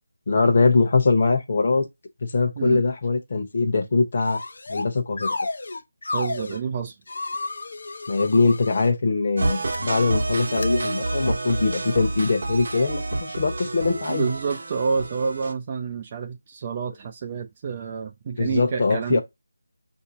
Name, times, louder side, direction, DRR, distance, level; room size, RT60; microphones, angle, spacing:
voice 1, 0.3-1.8 2.2-4.4 4.7-5.4 8.1-14.2 18.3-19.2, left 3 dB, 35° left, 1.0 m, -22 dB
sound 1, 4.2-4.9 5.2-6.6 7.1-8.9 9.5-9.8 10.5-10.7, left 3 dB, 55° left, 0.6 m, -32 dB
voice 2, 6.1-6.9 10.4-10.5 13.8-19.2, right 5 dB, 20° right, 0.3 m, -29 dB
sound 2, 9.4-15.5, right 2 dB, 45° right, 0.9 m, -28 dB
5.7 x 2.7 x 2.8 m
figure-of-eight pair, 175°, 0 cm